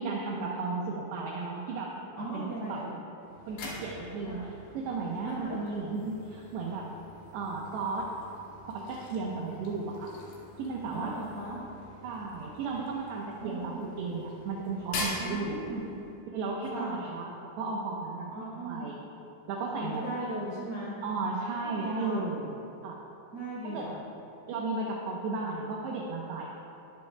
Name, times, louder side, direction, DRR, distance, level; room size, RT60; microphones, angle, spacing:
voice 1, 0.0-1.9 2.3-2.8 3.5-6.9 7.3-8.1 8.7-10.1 10.6-11.1 12.0-15.6 16.3-17.3 17.6-18.3 18.7-19.0 19.5-20.0 21.0-22.5 22.8-23.0 23.6-23.9 24.5-26.5, right 3 dB, 75° right, -2 dB, 2.7 m, -34 dB
voice 2, 2.1-3.0 4.2-4.5 5.2-5.6 10.9-11.6 13.4-13.9 15.2-15.8 16.7-17.0 18.3-18.9 19.8-21.0 21.7-22.3 23.3-23.9, right 1 dB, 55° right, -6 dB, 1.5 m, -38 dB
sound 1, 3.2-16.2, left 2 dB, 85° left, 5.0 m, -44 dB
21.0 x 12.5 x 2.3 m, 3.0 s
omnidirectional pair, 5.9 m